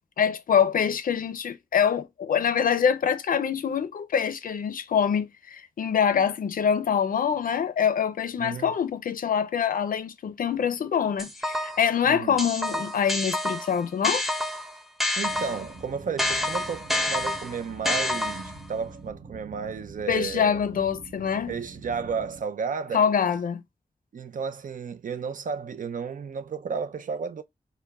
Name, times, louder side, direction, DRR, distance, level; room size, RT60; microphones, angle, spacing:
voice 1, 0.2-14.2 20.1-21.5 22.9-23.6, left 7 dB, 70° left, 0.4 m, -25 dB
voice 2, 8.4-8.7 12.0-12.4 15.2-20.7 21.5-23.0 24.1-27.4, right 6 dB, 65° right, 0.5 m, -33 dB
sound 1, 11.2-11.9 12.4-15.7 16.2-18.7, left 1 dB, ahead, 0.6 m, -28 dB
sound 2, 15.2-22.4, right 3 dB, 45° right, 1.3 m, -45 dB
4.6 x 2.1 x 2.3 m
wide cardioid pair, 90°, 15 cm